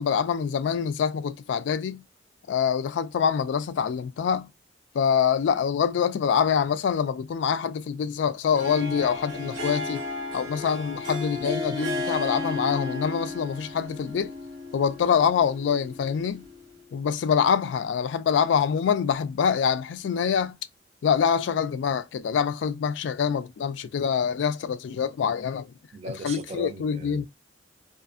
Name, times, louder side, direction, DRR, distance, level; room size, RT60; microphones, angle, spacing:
voice 1, 0.0-2.0 2.5-4.5 4.9-10.0 10.3-14.3 14.7-16.5 16.9-20.6 21.0-25.7 26.2-27.3, left 7 dB, 75° left, 0.3 m, -25 dB
Harp, 8.5-16.8, left 2 dB, 75° right, 1.1 m, -34 dB
voice 2, 25.9-27.3, right 2 dB, 35° right, 0.4 m, -38 dB
2.4 x 2.4 x 2.4 m
head